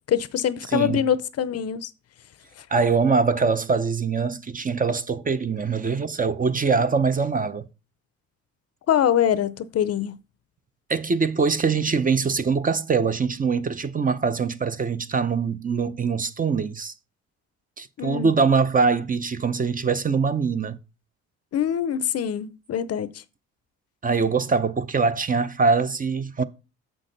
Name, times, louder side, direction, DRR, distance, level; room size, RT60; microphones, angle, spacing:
voice 1, 0.1-1.9 8.9-10.2 18.0-18.3 21.5-23.1, left 9 dB, 55° left, 0.6 m, -24 dB
voice 2, 0.7-1.0 2.7-7.7 10.9-16.9 17.8-20.8 24.0-26.4, right 5 dB, 30° right, 0.6 m, -23 dB
7.5 x 6.0 x 3.9 m
cardioid pair, 90°, 30 cm